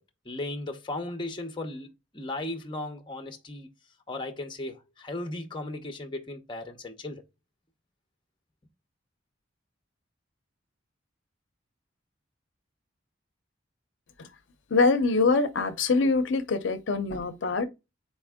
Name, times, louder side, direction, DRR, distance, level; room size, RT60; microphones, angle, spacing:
voice 1, 0.3-3.7 4.1-7.2, left 2 dB, 25° left, 0.6 m, -36 dB
voice 2, 14.7-17.6, left 3 dB, 70° left, 0.5 m, -24 dB
4.2 x 3.5 x 3.5 m
head